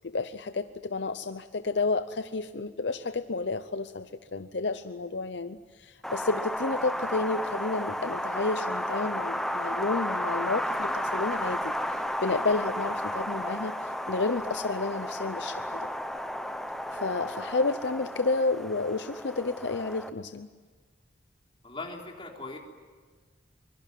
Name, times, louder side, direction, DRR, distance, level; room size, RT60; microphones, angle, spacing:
voice 1, 0.0-15.9 16.9-20.5, left 3 dB, 65° left, 10 dB, 0.7 m, -31 dB
Wind, 6.0-20.1, equal, ahead, 0.9 m, -33 dB
voice 2, 21.6-22.6, left 3 dB, 30° left, 1 dB, 3.7 m, -39 dB
24.0 x 23.5 x 9.2 m, 1.5 s
head